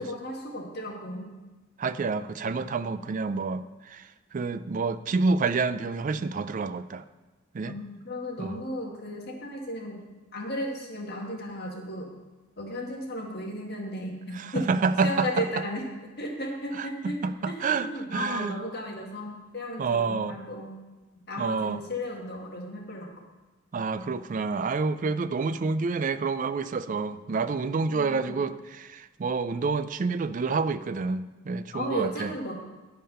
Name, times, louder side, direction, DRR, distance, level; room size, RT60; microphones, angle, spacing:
voice 1, 0.0-1.3 7.6-10.0 10.3-12.1 12.6-15.9 16.2-17.2 17.5-20.7 21.3-23.1 27.9-28.4 31.7-32.5, left 1 dB, 55° left, -1 dB, 1.8 m, -35 dB
voice 2, 1.8-3.6 3.9-4.0 4.3-7.0 7.5-7.7 8.4-8.6 14.3-15.3 16.7-16.9 17.2-18.6 19.8-20.4 21.4-21.8 23.7-32.3, right 4 dB, 40° right, 13 dB, 0.4 m, -28 dB
10.5 x 5.6 x 5.5 m, 1.2 s
head